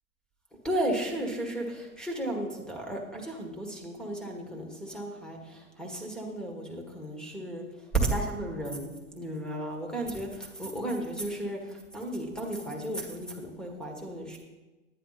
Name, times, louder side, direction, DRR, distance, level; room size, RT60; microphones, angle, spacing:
voice 1, 0.6-14.4, right 1 dB, ahead, 1 dB, 1.6 m, -34 dB
11.0 x 10.0 x 4.1 m, 1.2 s
hypercardioid pair, 140°, 43 cm